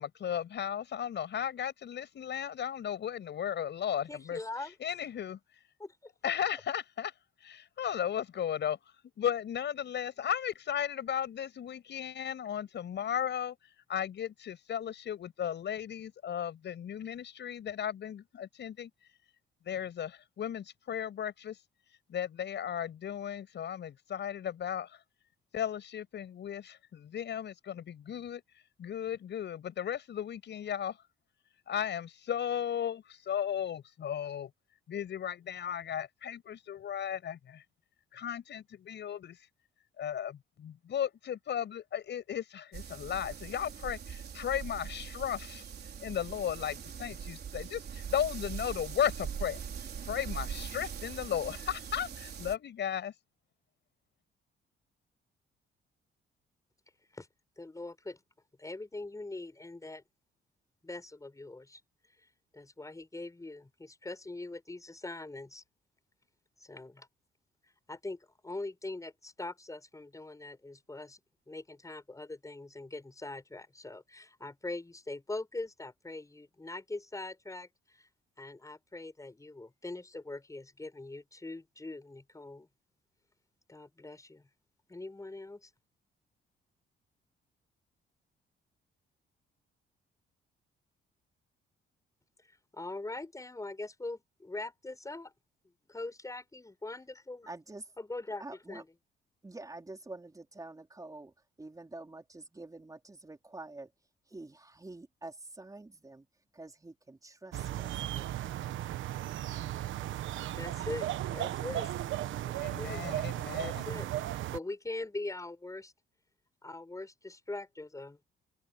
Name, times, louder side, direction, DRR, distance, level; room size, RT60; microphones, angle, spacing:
voice 1, 0.0-4.4 4.8-5.4 6.2-7.1 7.4-8.8 9.2-18.9 19.6-21.6 22.1-25.0 25.5-28.4 28.8-31.0 31.7-34.5 34.9-37.6 38.1-39.4 40.0-45.6 46.0-49.7 50.0-53.1 112.5-113.9, left 9 dB, 60° left, 7.0 m, -35 dB
voice 2, 4.1-4.9 5.8-5.9 57.1-57.3 57.6-58.2 58.6-60.0 60.8-61.8 62.5-65.6 66.6-67.1 67.9-71.2 71.5-78.1 78.4-82.7 83.7-84.5 84.9-85.7 92.7-95.3 95.9-97.5 98.0-98.9 110.5-111.9 112.5-113.0 113.6-115.9 116.6-118.2, left 2 dB, 15° left, 7.0 m, -42 dB
sound 1, 42.7-52.6, right 7 dB, 55° right, 4.0 m, -42 dB
voice 3, 97.5-97.8 98.4-98.8 99.4-101.3 101.6-103.9 104.3-106.2 106.5-108.2, right 2 dB, 15° right, 4.4 m, -47 dB
sound 2, 107.5-114.6, right 13 dB, 75° right, 1.2 m, -36 dB
open air
cardioid pair, 90°, 20 cm